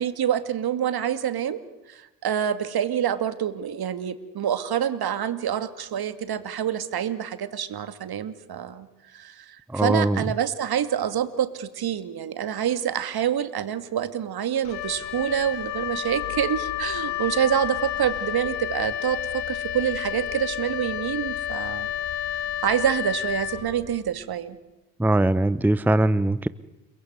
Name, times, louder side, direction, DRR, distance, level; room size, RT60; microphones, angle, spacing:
voice 1, 0.0-1.6 1.9-8.9 9.1-21.9 22.1-24.6, right 9 dB, 50° right, 11 dB, 2.5 m, -27 dB
voice 2, 9.7-10.2 25.0-26.5, right 1 dB, 5° right, 15 dB, 0.9 m, -21 dB
Wind instrument woodwind instrument, 14.6-24.1, left 11 dB, 80° left, 2.8 m, -30 dB
29.5 x 21.0 x 9.6 m, 1.0 s
hypercardioid pair, 50°, 48 cm